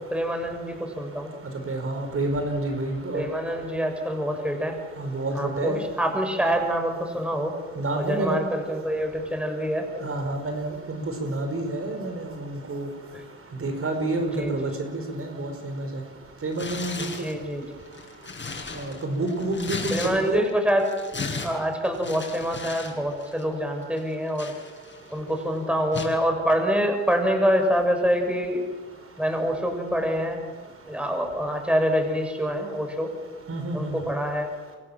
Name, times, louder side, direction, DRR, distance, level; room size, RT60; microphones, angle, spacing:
voice 1, 0.1-1.3 3.1-4.8 5.4-7.5 7.9-9.9 14.4-14.5 17.0-17.7 19.9-20.9 21.4-24.5 25.1-28.6 29.2-30.4 30.9-33.1 33.7-34.5, equal, 5° right, 4 dB, 6.8 m, -26 dB
voice 2, 1.7-3.2 5.0-5.8 7.8-8.4 10.0-12.9 13.6-15.9 16.4-17.1 18.7-20.0 20.3-20.5 33.5-34.0, right 2 dB, 50° right, 5 dB, 5.6 m, -29 dB
Tearing, 16.5-17.3 17.9-20.5 20.8-22.9 23.2-23.4 24.0-25.1 25.9-26.2, left 4 dB, 40° left, 7.4 m, -36 dB
30.0 x 24.5 x 7.5 m, 1.4 s
cardioid pair, 75°, 29 cm